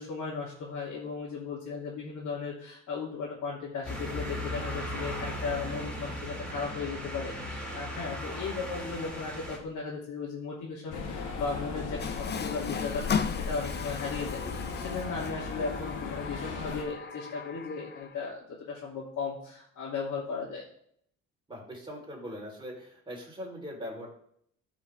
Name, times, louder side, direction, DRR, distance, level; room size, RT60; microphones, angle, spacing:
voice 1, 0.0-20.6, left 5 dB, 65° left, -6 dB, 3.1 m, -36 dB
sound 1, 3.8-9.6, equal, 5° left, 4.2 m, -37 dB
sound 2, 10.9-16.8, left 4 dB, 85° left, 2.1 m, -37 dB
Water tap faucet, 12.0-18.3, left 6 dB, 35° left, 0.7 m, -37 dB
voice 2, 21.5-24.1, equal, 15° right, -2 dB, 4.1 m, -41 dB
13.5 x 6.0 x 3.6 m, 0.66 s
cardioid pair, 110°, 31 cm